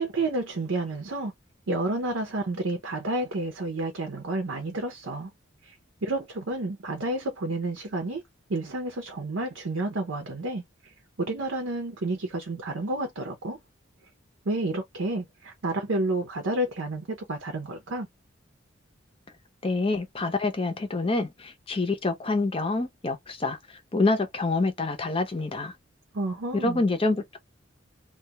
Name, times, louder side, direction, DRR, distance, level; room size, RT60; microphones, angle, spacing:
voice 1, 0.0-1.3 1.7-5.3 5.6-5.8 6.0-8.2 8.5-10.6 11.2-13.6 14.5-18.1 26.1-26.8, right 2 dB, 85° right, 0.7 m, -30 dB
voice 2, 19.6-23.6 23.9-25.7 26.6-27.4, left 3 dB, 30° left, 0.6 m, -26 dB
2.3 x 2.2 x 2.8 m
head